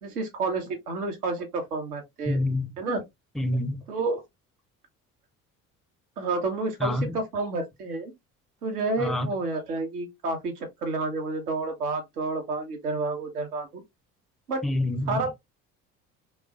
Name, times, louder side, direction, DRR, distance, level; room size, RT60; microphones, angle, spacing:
voice 1, 0.0-2.4 2.8-3.0 3.9-4.2 6.2-8.1 8.6-13.8 14.5-14.6 15.1-15.3, right 3 dB, 80° right, 1.1 m, -30 dB
voice 2, 2.3-2.7 3.4-3.8 6.8-7.2 9.0-9.3 14.6-15.2, left 1 dB, ahead, 0.5 m, -27 dB
3.3 x 3.2 x 2.3 m
figure-of-eight pair, 60°, 45 cm